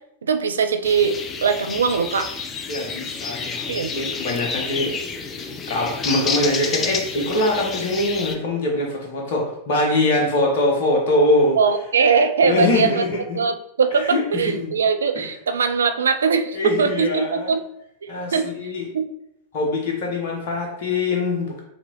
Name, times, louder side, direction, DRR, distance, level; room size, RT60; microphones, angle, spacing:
voice 1, 0.2-2.3 3.7-3.9 11.6-13.0 13.3-17.6 18.0-18.5 18.9-19.1, right 5 dB, 70° right, 8 dB, 0.4 m, -21 dB
sound 1, 0.8-8.4, left 5 dB, 25° left, 0.5 m, -29 dB
voice 2, 2.7-5.0 5.4-11.6 12.5-13.4 13.9-14.2 15.1-15.2 16.5-17.5 18.1-18.9 19.5-21.6, left 1 dB, 50° left, 0 dB, 1.0 m, -23 dB
5.8 x 2.9 x 2.9 m, 0.77 s
figure-of-eight pair, 90°, 0 cm